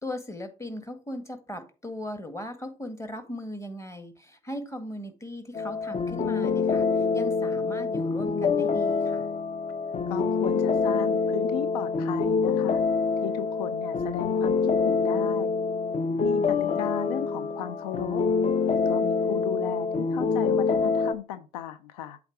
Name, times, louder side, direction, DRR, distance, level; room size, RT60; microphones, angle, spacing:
voice 1, 0.0-9.3 16.4-16.9, left 1 dB, 15° left, 1.7 m, -38 dB
sound 1, 5.5-21.1, left 4 dB, 35° left, 0.7 m, -26 dB
voice 2, 10.1-12.8 13.2-15.5 16.2-18.2 18.7-22.2, left 10 dB, 85° left, 0.5 m, -36 dB
7.8 x 3.5 x 4.7 m
hypercardioid pair, 50°, 20 cm